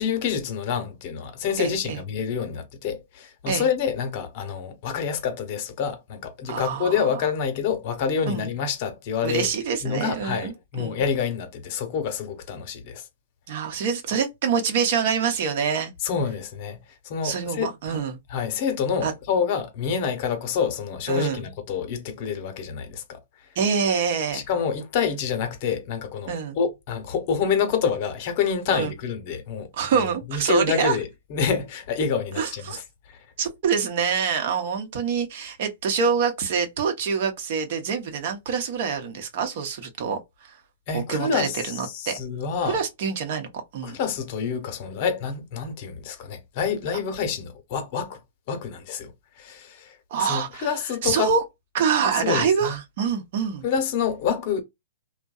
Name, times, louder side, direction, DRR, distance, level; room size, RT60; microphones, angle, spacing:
voice 1, 0.0-9.5 9.8-13.0 16.0-16.8 17.0-18.0 18.3-23.2 24.3-29.7 30.3-32.6 33.1-33.2 40.9-42.8 43.8-48.2 48.5-51.3 52.2-52.8 53.6-54.6, left 6 dB, 45° left, 0.8 m, -27 dB
voice 2, 1.6-2.0 3.5-3.7 6.5-7.2 8.3-8.5 9.2-11.0 13.5-15.9 17.2-18.2 19.0-19.1 21.1-21.4 23.6-24.4 26.3-26.6 28.7-28.9 29.7-31.0 32.3-32.8 33.4-40.6 40.9-42.2 42.6-43.5 43.7-43.9 50.1-51.4 51.7-53.6, right 6 dB, 55° right, 0.8 m, -26 dB
2.6 x 2.1 x 2.3 m
hypercardioid pair, 130°, 0 cm